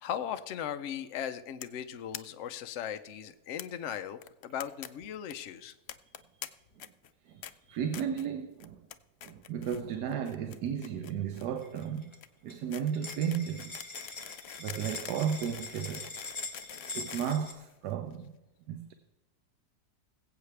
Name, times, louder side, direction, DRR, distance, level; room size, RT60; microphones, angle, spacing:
voice 1, 0.0-5.7, left 9 dB, 60° left, 0.9 m, -38 dB
sound 1, 1.6-1.8 2.1-2.2 2.5-2.6 2.8-2.9 3.6-3.7 4.2-4.9 5.1-5.3 5.9-6.5 6.8-7.1 7.4-7.5 7.9-8.3 8.6-9.0 9.2-9.8 10.1-18.1, left 10 dB, 75° left, 0.6 m, -45 dB
voice 2, 7.3-8.8 9.2-12.1 12.4-13.8 14.6-16.1 16.9-18.4 18.7-18.9, right 8 dB, 80° right, 1.3 m, -34 dB
sound 2, 11.6-12.2 12.5-12.6 12.8-17.5, left 3 dB, 20° left, 1.2 m, -43 dB
21.5 x 8.0 x 3.3 m
omnidirectional pair, 1.7 m